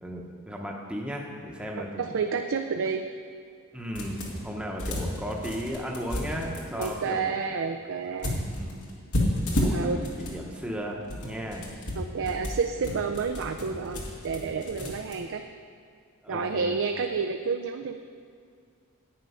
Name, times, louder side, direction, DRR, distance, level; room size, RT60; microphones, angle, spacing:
voice 1, 0.0-2.1 3.7-7.3 8.4-8.9 9.6-9.9 10.2-11.7 12.2-12.4 14.8-15.0 16.2-16.8, equal, 5° right, -1 dB, 0.9 m, -36 dB
voice 2, 1.8-3.0 6.8-8.4 9.7-10.0 12.0-15.4 16.3-18.0, right 5 dB, 60° right, 6 dB, 0.5 m, -30 dB
sound 1, 4.0-4.5 4.8-6.9 8.2-10.4 10.9-15.1, left 1 dB, 80° left, 1.9 m, -31 dB
9.4 x 9.0 x 5.6 m, 2.2 s
head